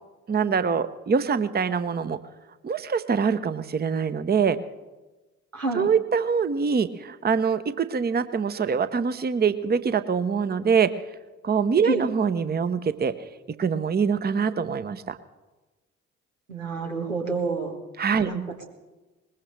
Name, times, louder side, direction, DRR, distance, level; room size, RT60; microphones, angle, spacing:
voice 1, 0.3-2.2 2.6-4.6 5.7-10.9 11.4-13.1 13.6-15.2 18.0-18.3, right 6 dB, 25° right, 13 dB, 0.9 m, -24 dB
voice 2, 5.5-5.9 11.8-12.1 16.5-17.7 18.2-18.6, right 4 dB, 90° right, 1 dB, 1.8 m, -28 dB
21.0 x 20.5 x 3.3 m, 1.2 s
figure-of-eight pair, 45°, 38 cm